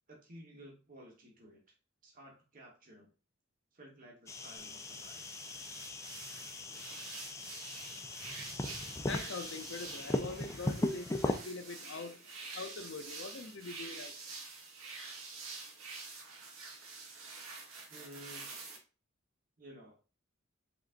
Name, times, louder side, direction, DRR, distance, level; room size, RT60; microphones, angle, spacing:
voice 1, 0.1-1.6 2.0-3.1 3.7-5.3 17.9-18.5 19.6-20.0, equal, 40° right, 1.2 m, -54 dB
sound 1, 4.3-11.4, left 1 dB, 15° left, 0.4 m, -38 dB
sound 2, 4.6-18.8, right 4 dB, 80° right, 1.1 m, -47 dB
voice 2, 8.7-14.2, left 4 dB, 60° left, 0.7 m, -44 dB
5.1 x 3.7 x 2.5 m
head